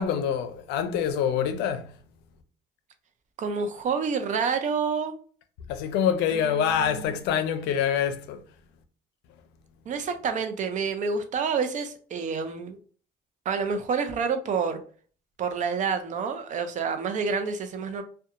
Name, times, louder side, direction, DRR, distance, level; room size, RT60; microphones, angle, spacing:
voice 1, 0.0-1.9 5.7-8.4, left 8 dB, 90° left, 0.5 m, -26 dB
voice 2, 3.4-5.1 6.3-7.1 9.9-12.8 13.5-14.8 15.4-18.0, right 5 dB, 45° right, 0.5 m, -28 dB
2.4 x 2.2 x 2.8 m
cardioid pair, 110°, 17 cm